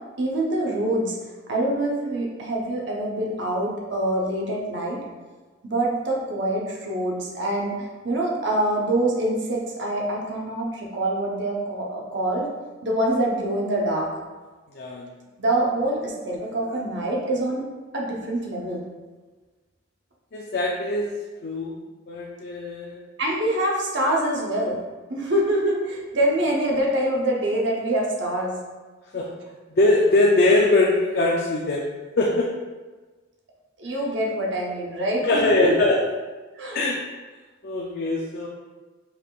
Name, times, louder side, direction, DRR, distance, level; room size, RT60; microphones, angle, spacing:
voice 1, 0.2-1.2 1.5-5.0 5.6-12.5 12.8-14.1 15.4-17.6 17.9-18.8 23.2-24.8 25.1-28.6 33.8-35.7 36.6-36.8, right 1 dB, 60° right, -2 dB, 0.9 m, -25 dB
voice 2, 14.7-15.1 20.3-21.1 21.4-21.7 22.1-23.0 29.1-29.4 29.8-31.8 32.2-32.5 35.2-36.0 36.7-37.0 37.6-38.5, left 2 dB, 50° left, -3 dB, 0.5 m, -21 dB
5.6 x 3.6 x 2.4 m, 1.3 s
head